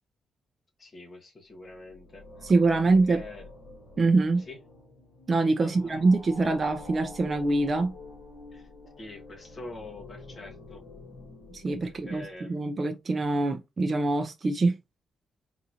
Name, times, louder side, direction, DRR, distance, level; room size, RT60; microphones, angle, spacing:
voice 1, 0.8-2.5 3.1-3.5 4.5-4.6 5.6-6.0 8.5-8.7 9.0-10.8 11.8-12.6, left 2 dB, 30° left, 1.2 m, -45 dB
sound 1, 1.6-12.8, left 3 dB, 60° left, 1.6 m, -47 dB
voice 2, 2.4-3.2 4.0-4.4 5.3-7.9 11.5-14.8, right 3 dB, 30° right, 0.4 m, -24 dB
3.9 x 2.5 x 2.8 m
cardioid pair, 140°, 0 cm